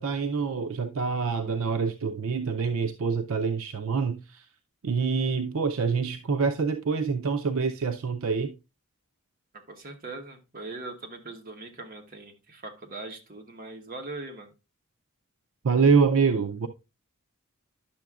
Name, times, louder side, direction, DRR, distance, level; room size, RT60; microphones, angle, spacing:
voice 1, 0.0-4.5 4.8-8.5 15.6-16.7, right 5 dB, 70° right, 0.5 m, -26 dB
voice 2, 9.5-14.5, right 2 dB, 40° right, 1.1 m, -41 dB
10.5 x 6.8 x 2.4 m
head